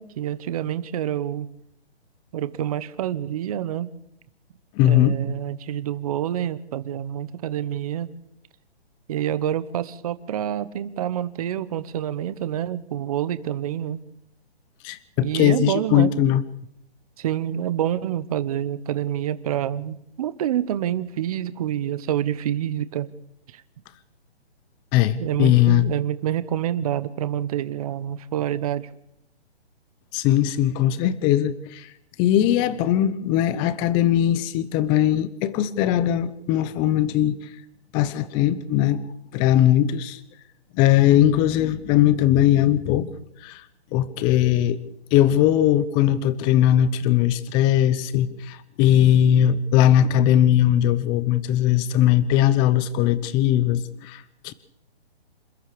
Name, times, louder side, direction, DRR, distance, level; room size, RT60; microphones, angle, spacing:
voice 1, 0.0-1.5 2.3-3.9 4.8-8.1 9.1-14.0 15.2-16.1 17.2-23.1 23.5-23.6 25.2-28.9, right 11 dB, 35° right, 15 dB, 1.1 m, -27 dB
voice 2, 4.8-5.2 14.8-16.4 24.9-25.9 30.1-31.9 32.2-37.4 37.9-39.0 39.3-40.2 40.7-43.1 43.4-43.6 43.9-44.8 45.1-54.5, left 11 dB, 15° left, 16 dB, 0.8 m, -19 dB
27.5 x 14.0 x 6.9 m, 0.78 s
hypercardioid pair, 155°, 32 cm